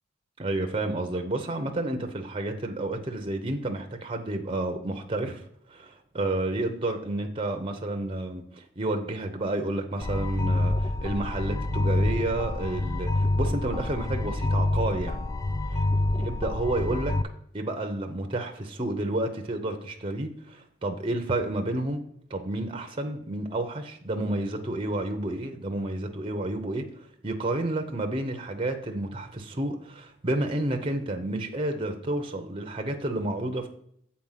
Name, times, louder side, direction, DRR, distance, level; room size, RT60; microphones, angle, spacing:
voice 1, 0.4-15.2 15.7-15.8 16.1-17.2 17.5-22.0 22.3-33.7, right 2 dB, 30° right, 5 dB, 0.7 m, -30 dB
sound 1, 10.0-17.2, left 2 dB, 20° left, 0.3 m, -27 dB
7.6 x 4.3 x 5.7 m, 0.67 s
head